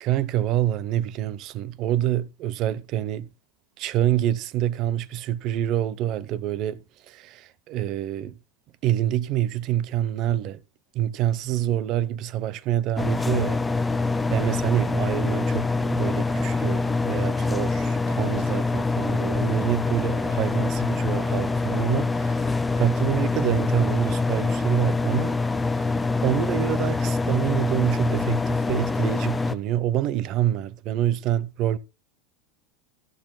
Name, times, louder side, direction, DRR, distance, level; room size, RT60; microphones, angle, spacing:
voice 1, 0.0-3.3 3.8-8.3 8.8-10.6 10.9-13.6 14.3-25.4 26.2-31.8, right 12 dB, 45° right, 0.7 m, -26 dB
sound 1, 13.0-29.5, left 3 dB, 10° left, 0.7 m, -25 dB
14.0 x 12.0 x 2.2 m
supercardioid pair, 130°, 0 cm